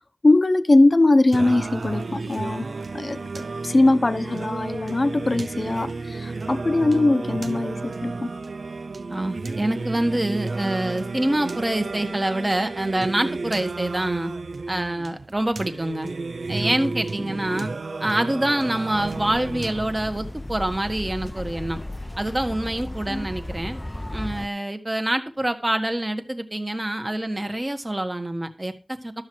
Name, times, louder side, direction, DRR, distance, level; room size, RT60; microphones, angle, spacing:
voice 1, 0.2-2.7 2.9-8.3 17.5-17.6 23.1-23.2, left 2 dB, 45° left, 0.9 m, -21 dB
Singing, 1.3-20.3, right 3 dB, 85° right, 0.4 m, -32 dB
voice 2, 9.1-14.3 14.7-16.1 16.5-17.7 18.0-21.8 22.2-23.8 24.1-29.2, right 1 dB, 25° right, 1.4 m, -26 dB
sound 1, 18.9-24.5, left 1 dB, 15° left, 0.6 m, -35 dB
12.5 x 7.4 x 4.5 m
wide cardioid pair, 75°, 0 cm